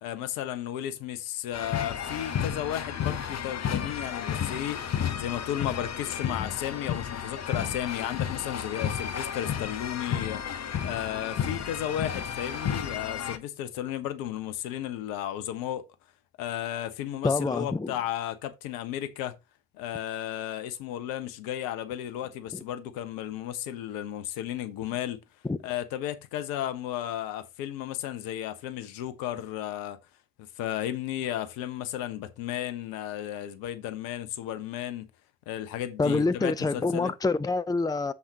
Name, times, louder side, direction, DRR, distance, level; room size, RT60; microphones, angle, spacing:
voice 1, 0.0-10.4 10.8-15.8 16.4-19.3 19.7-25.2 25.6-30.0 30.4-35.1 35.5-37.1, left 11 dB, 65° left, 1.2 m, -34 dB
sound 1, 1.5-13.4, left 8 dB, 45° left, 1.1 m, -32 dB
voice 2, 17.2-17.9 25.4-25.6 36.0-38.1, left 3 dB, 10° left, 0.7 m, -26 dB
7.7 x 7.4 x 3.0 m
figure-of-eight pair, 40°, 37 cm